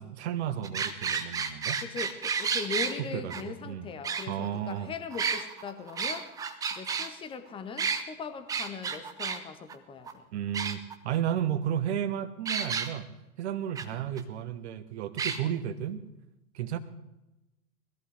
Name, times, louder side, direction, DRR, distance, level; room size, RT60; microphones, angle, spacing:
voice 1, 0.0-1.8 3.0-3.9 4.3-4.9 10.3-13.1 13.4-16.0 16.5-16.8, right 10 dB, 45° right, 12 dB, 1.3 m, -33 dB
sound 1, 0.6-2.9 3.3-3.4 4.0-4.7 5.1-7.1 7.8-8.0 8.5-9.4 9.7-9.8 10.1-10.2 10.5-11.2 12.4-12.9 13.7-13.8 14.2-14.3 15.2-15.4, right 6 dB, 10° right, 0.5 m, -31 dB
voice 2, 1.8-6.3 6.7-10.3 13.9-14.1, left 5 dB, 10° left, 9 dB, 1.0 m, -40 dB
20.5 x 14.0 x 3.3 m, 0.96 s
figure-of-eight pair, 100°, 44 cm